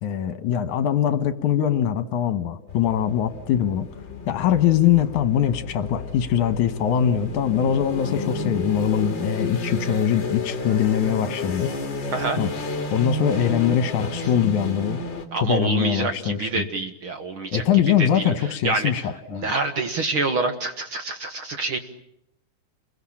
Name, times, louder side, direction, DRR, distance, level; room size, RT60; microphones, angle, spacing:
voice 1, 0.0-3.9 4.3-11.7 12.0-12.5 12.9-15.0 15.3-16.7 17.5-19.5, left 9 dB, 70° left, 12 dB, 2.7 m, -22 dB
sound 1, 2.7-15.3, left 2 dB, 35° left, 2.8 m, -31 dB
voice 2, 15.3-17.6 18.0-18.3 18.6-18.9 19.3-21.8, right 3 dB, 50° right, 8 dB, 1.9 m, -26 dB
29.0 x 23.0 x 8.7 m, 0.76 s
omnidirectional pair, 3.6 m